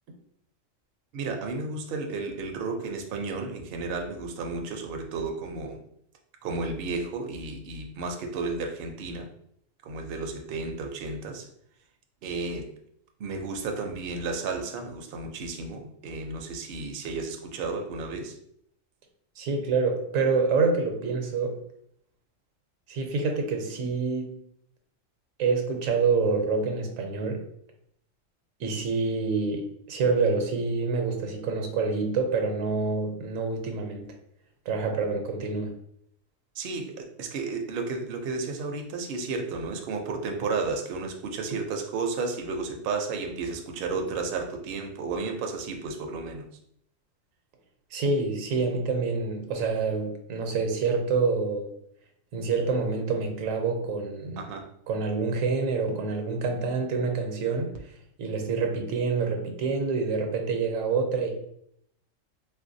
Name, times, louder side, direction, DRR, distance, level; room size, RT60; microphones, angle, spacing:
voice 1, 1.1-5.8 6.4-9.3 9.8-11.5 12.2-12.7 13.2-18.3 36.6-46.5 54.4-54.7, right 4 dB, 65° right, 3 dB, 0.6 m, -33 dB
voice 2, 19.4-21.5 22.9-24.4 25.4-27.4 28.6-34.1 34.7-35.7 47.9-51.7 52.3-54.4 54.9-57.8 58.2-61.3, right 4 dB, 85° right, 4 dB, 1.0 m, -27 dB
3.3 x 2.5 x 2.6 m, 0.70 s
omnidirectional pair, 1.3 m